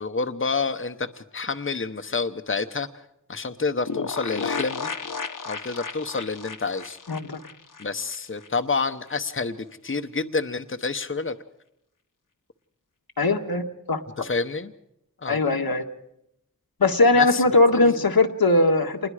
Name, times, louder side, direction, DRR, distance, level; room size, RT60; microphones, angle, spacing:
voice 1, 0.0-2.9 3.3-4.9 5.5-7.0 7.8-11.3 14.2-14.7 15.2-15.4 17.2-17.4 17.7-18.0, left 4 dB, 35° left, 7 dB, 1.0 m, -28 dB
sound 1, 3.9-8.5 8.8-8.9 9.1-9.2, left 5 dB, 60° left, 1.2 m, -33 dB
voice 2, 7.1-7.4 13.2-14.0 15.3-15.8 16.8-19.0, left 2 dB, 85° left, 4 dB, 1.6 m, -20 dB
27.0 x 21.0 x 4.9 m, 0.79 s
wide cardioid pair, 60°, 35 cm